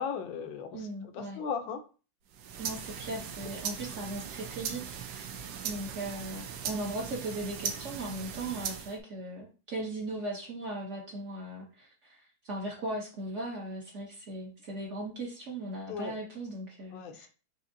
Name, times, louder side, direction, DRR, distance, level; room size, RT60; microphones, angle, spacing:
voice 1, 0.0-0.9 1.1-1.8 15.9-16.2 16.9-17.3, left 6 dB, 85° left, 7 dB, 1.4 m, -36 dB
voice 2, 0.7-1.4 2.6-5.3 5.6-17.3, right 1 dB, 50° right, -2 dB, 1.0 m, -38 dB
sound 1, 2.3-9.0, right 7 dB, 90° right, 1.3 m, -39 dB
5.0 x 2.7 x 2.6 m, 0.35 s
omnidirectional pair, 2.0 m